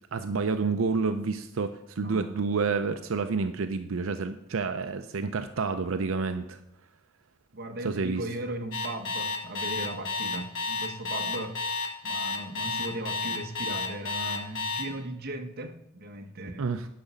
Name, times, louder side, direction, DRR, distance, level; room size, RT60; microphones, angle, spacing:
voice 1, 0.1-6.6 7.8-8.3 16.6-16.9, right 4 dB, 85° right, 0.6 m, -29 dB
voice 2, 7.5-11.7 12.0-16.7, right 1 dB, 50° right, 1.1 m, -37 dB
Alarm, 8.7-14.8, left 3 dB, 70° left, 1.6 m, -31 dB
10.5 x 6.0 x 5.4 m
head